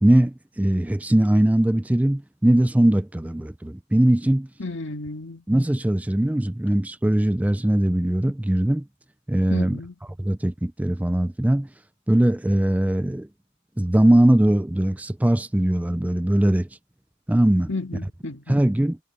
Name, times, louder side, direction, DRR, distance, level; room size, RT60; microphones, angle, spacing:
voice 1, 0.0-4.5 5.5-8.8 9.3-9.8 10.2-11.7 12.1-13.3 13.8-16.7 17.3-17.7 18.5-19.0, right 1 dB, 5° right, 0.4 m, -20 dB
voice 2, 4.6-5.4 9.5-9.9 17.7-18.6, left 3 dB, 60° left, 2.1 m, -32 dB
head